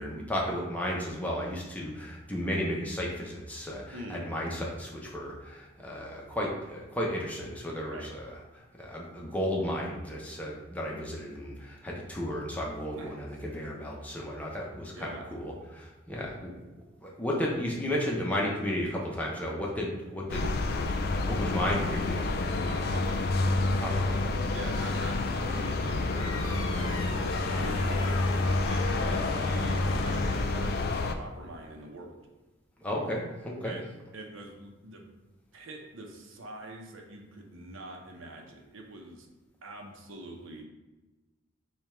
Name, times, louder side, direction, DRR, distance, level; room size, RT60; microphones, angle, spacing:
voice 1, 0.0-8.3 8.8-16.7 17.0-22.3 23.8-24.3 24.9-25.0 32.8-33.8, equal, 10° left, -3 dB, 0.6 m, -34 dB
voice 2, 3.9-4.3 7.8-8.1 12.9-13.2 14.9-15.3 22.6-23.3 24.5-27.3 27.5-32.2 33.6-33.8 34.1-35.1 35.5-39.3 39.6-40.6, right 2 dB, 80° right, 2 dB, 0.7 m, -44 dB
sound 1, 20.3-31.1, left 2 dB, 50° left, 0.3 m, -28 dB
sound 2, 26.2-30.6, left 3 dB, 90° left, 0.6 m, -41 dB
5.1 x 2.4 x 4.3 m, 1.1 s
head